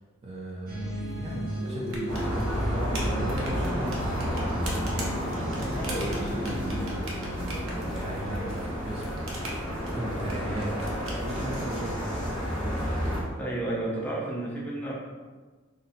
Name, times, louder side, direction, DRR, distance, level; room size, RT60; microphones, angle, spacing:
voice 1, 0.2-5.1 5.9-9.1 9.9-10.9 11.2-12.2, right 1 dB, 30° right, -3 dB, 0.4 m, -37 dB
sound 1, 0.7-7.0, equal, 45° right, 1.0 m, -35 dB
sound 2, 1.8-11.8, right 1 dB, 85° right, 0.8 m, -41 dB
sound 3, 2.1-13.2, equal, 25° left, 1.2 m, -31 dB
voice 2, 13.4-14.9, right 2 dB, 10° left, -5 dB, 0.7 m, -32 dB
4.1 x 2.0 x 3.9 m, 1.4 s
head